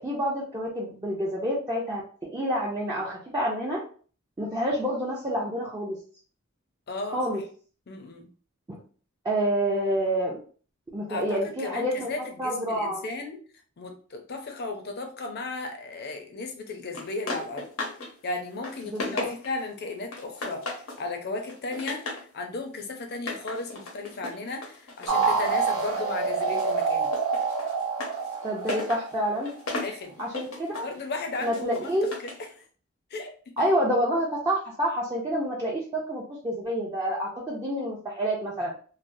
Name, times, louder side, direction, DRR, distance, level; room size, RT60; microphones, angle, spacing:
voice 1, 0.0-2.0 2.3-3.8 4.4-6.0 7.1-7.4 8.7-8.8 9.2-10.4 10.9-12.1 12.4-13.1 18.9-19.3 28.4-29.5 30.2-30.9 31.4-32.1 33.6-38.7, equal, 20° right, -5 dB, 0.5 m, -28 dB
voice 2, 6.9-7.4 7.9-8.3 11.1-13.4 13.8-17.7 18.2-20.6 21.0-22.0 22.3-27.1 29.8-30.2 30.8-32.5 33.1-33.3 33.6-33.7, left 2 dB, 50° left, 4 dB, 0.6 m, -35 dB
sound 1, 16.9-18.1 18.4-19.7 20.1-21.0 21.4-22.3 23.1-26.1 26.4-32.5, left 2 dB, 85° left, 0.9 m, -37 dB
sound 2, 25.1-29.5, right 5 dB, 80° right, 0.7 m, -27 dB
3.1 x 2.1 x 2.6 m, 0.42 s
head